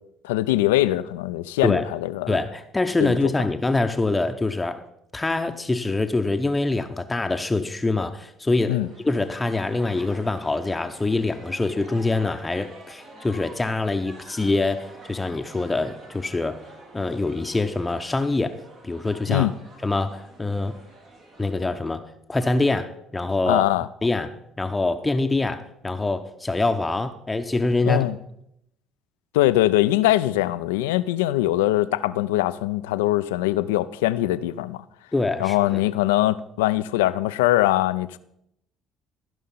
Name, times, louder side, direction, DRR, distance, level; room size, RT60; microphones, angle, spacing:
voice 1, 0.2-2.4 3.0-3.3 8.7-8.9 19.3-19.5 23.5-23.9 27.9-28.2 29.3-34.8 35.4-38.2, left 15 dB, 80° left, 0.4 m, -22 dB
voice 2, 2.3-4.8 5.1-8.8 9.0-16.6 16.9-18.6 18.8-19.5 19.8-20.8 21.4-22.0 22.3-23.6 24.0-28.0 35.1-35.9, left 2 dB, 20° left, 0.7 m, -24 dB
sound 1, 8.8-21.5, right 2 dB, 65° right, 3.0 m, -47 dB
14.5 x 5.5 x 5.5 m
hypercardioid pair, 55°, 0 cm